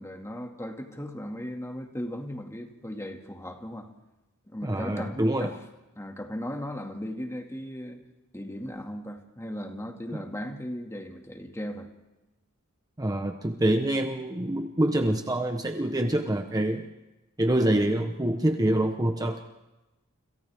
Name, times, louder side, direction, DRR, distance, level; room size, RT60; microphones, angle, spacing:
voice 1, 0.0-3.9 4.5-5.6 6.0-8.0 8.3-11.9, equal, 15° left, 3 dB, 2.1 m, -37 dB
voice 2, 4.6-5.5 10.1-10.3 13.0-16.9 17.4-19.4, right 1 dB, 15° right, 5 dB, 1.0 m, -26 dB
29.5 x 27.0 x 3.6 m, 1.0 s
head